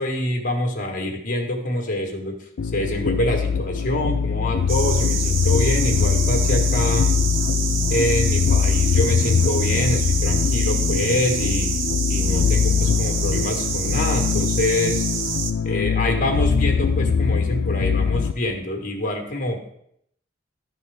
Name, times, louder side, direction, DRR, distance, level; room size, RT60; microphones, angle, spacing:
voice 1, 0.0-2.4 2.7-7.1 7.9-11.7 12.1-15.0 15.6-19.7, left 1 dB, 45° left, 2 dB, 1.3 m, -25 dB
sound 1, 2.6-18.3, left 6 dB, 75° left, 0.4 m, -22 dB
sound 2, 4.7-15.5, right 6 dB, 90° right, 0.7 m, -28 dB
11.5 x 4.4 x 3.4 m, 0.72 s
head